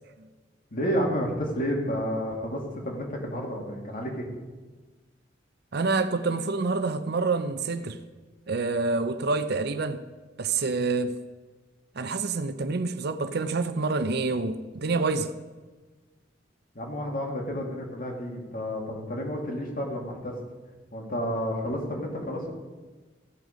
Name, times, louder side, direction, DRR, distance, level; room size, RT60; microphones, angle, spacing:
voice 1, 0.7-4.3 16.7-20.3 20.9-22.5, equal, 50° left, 2.3 m, -30 dB
voice 2, 5.7-8.0 8.5-10.0 10.4-11.1 12.0-15.3, right 3 dB, 60° right, 0.7 m, -27 dB
15.5 x 6.5 x 5.1 m
head